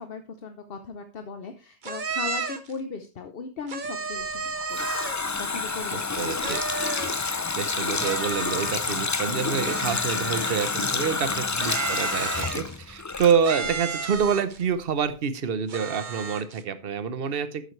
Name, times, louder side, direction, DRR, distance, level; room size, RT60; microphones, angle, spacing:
voice 1, 0.0-4.9 5.4-6.6 11.3-11.4 17.2-17.4, left 5 dB, 65° left, 7 dB, 1.1 m, -38 dB
sound 1, 1.8-2.7 3.7-5.3 6.4-7.2 8.0-9.0 9.6-10.8 11.6-12.8 13.4-14.6 15.7-16.6, right 4 dB, 50° right, 1.2 m, -33 dB
Water tap faucet, 4.2-13.9 14.1-14.3, left 4 dB, 25° left, 0.4 m, -29 dB
voice 2, 5.9-6.6 7.5-17.6, right 6 dB, 65° right, 12 dB, 1.1 m, -27 dB
11.5 x 9.1 x 3.2 m, 0.33 s
omnidirectional pair, 1.0 m